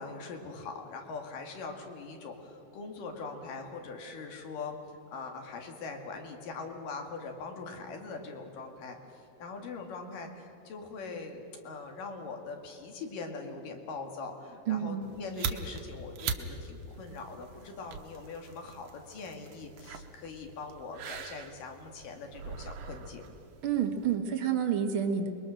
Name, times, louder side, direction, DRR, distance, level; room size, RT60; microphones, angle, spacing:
voice 1, 0.0-23.3, left 4 dB, 85° left, 3 dB, 3.7 m, -42 dB
voice 2, 14.7-15.1 23.6-25.3, right 8 dB, 50° right, 6 dB, 1.8 m, -29 dB
sound 1, 15.0-24.2, right 6 dB, 75° right, 2.5 m, -42 dB
27.5 x 21.5 x 6.5 m, 2.8 s
omnidirectional pair, 3.8 m